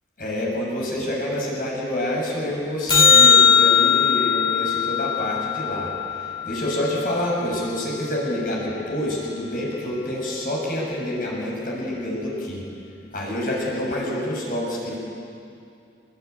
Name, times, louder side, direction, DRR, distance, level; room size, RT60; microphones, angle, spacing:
voice 1, 0.2-12.7 13.1-15.0, left 1 dB, 50° left, -3 dB, 6.9 m, -27 dB
sound 1, 2.9-7.4 13.9-14.0, left 6 dB, 25° left, 2.1 m, -19 dB
28.5 x 21.5 x 9.7 m, 2.5 s
head